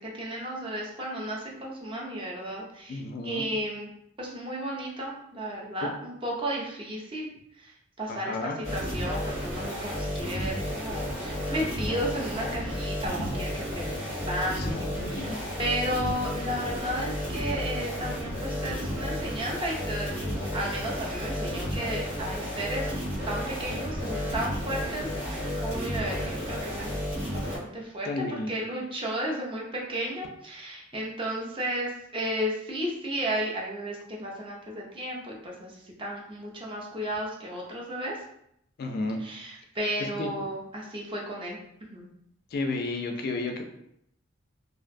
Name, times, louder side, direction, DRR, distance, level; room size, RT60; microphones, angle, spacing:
voice 1, 0.0-3.9 4.2-7.3 7.6-7.7 8.0-14.7 15.1-22.9 23.2-38.2 39.2-41.6 41.9-42.1, right 1 dB, 25° right, -2 dB, 0.5 m, -33 dB
voice 2, 2.9-3.5 8.1-8.6 14.6-15.5 28.1-28.5 38.8-39.2 40.2-40.3 42.5-43.6, left 3 dB, 50° left, 4 dB, 0.3 m, -32 dB
sound 1, 8.6-27.6, equal, 90° right, 1.4 m, -32 dB
2.5 x 2.0 x 2.5 m, 0.75 s
head